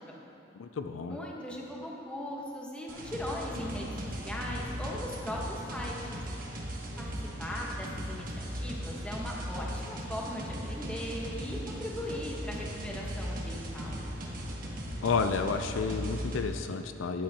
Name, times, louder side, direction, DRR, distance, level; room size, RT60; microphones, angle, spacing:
voice 1, 0.6-1.2 15.0-17.2, left 5 dB, 75° left, 7 dB, 0.4 m, -31 dB
voice 2, 1.1-6.1 7.0-7.1 7.4-14.0, left 1 dB, 5° left, -3 dB, 1.3 m, -39 dB
sound 1, 2.9-16.4, equal, 45° right, 1.3 m, -38 dB
13.5 x 10.5 x 2.9 m, 2.9 s
head